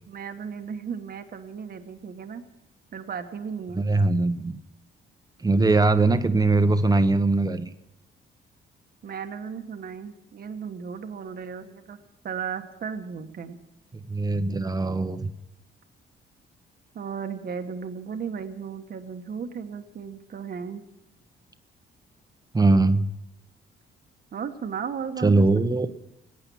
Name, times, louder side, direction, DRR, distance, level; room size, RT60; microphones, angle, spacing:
voice 1, 0.1-2.4 2.9-3.8 9.0-12.0 12.2-13.6 16.9-20.8 24.3-25.6, right 6 dB, 50° right, 6 dB, 1.3 m, -35 dB
voice 2, 3.8-4.6 5.4-7.7 14.1-15.3 22.5-23.1 25.2-25.9, right 3 dB, 20° right, 10 dB, 1.0 m, -21 dB
19.0 x 8.9 x 7.0 m, 0.88 s
cardioid pair, 90°, 20 cm